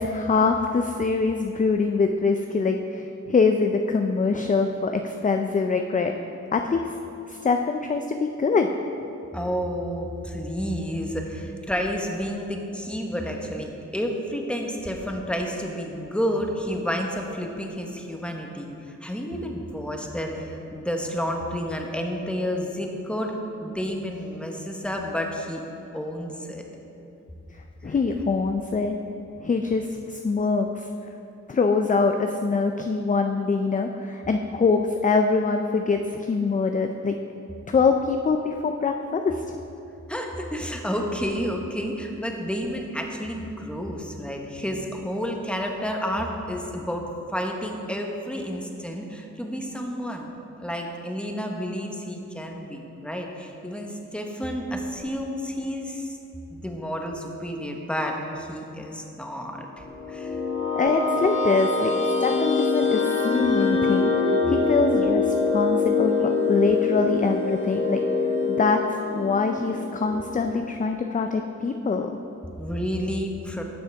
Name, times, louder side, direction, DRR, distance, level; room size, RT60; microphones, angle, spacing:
voice 1, 0.0-6.1 6.5-6.9 7.3-8.7 27.8-29.0 29.4-30.9 31.5-37.2 37.7-39.6 60.7-64.1 64.5-68.0 68.5-68.8 69.1-72.1, left 4 dB, 25° left, 5 dB, 0.4 m, -24 dB
voice 2, 9.3-25.6 25.9-26.6 27.8-27.9 40.1-47.0 47.3-50.3 50.6-56.2 56.5-60.4 72.6-73.6, equal, 5° left, 1 dB, 1.1 m, -30 dB
sound 1, 59.8-70.7, left 4 dB, 45° left, 1.4 m, -24 dB
11.5 x 6.3 x 3.5 m, 2.8 s
cardioid pair, 55°, 29 cm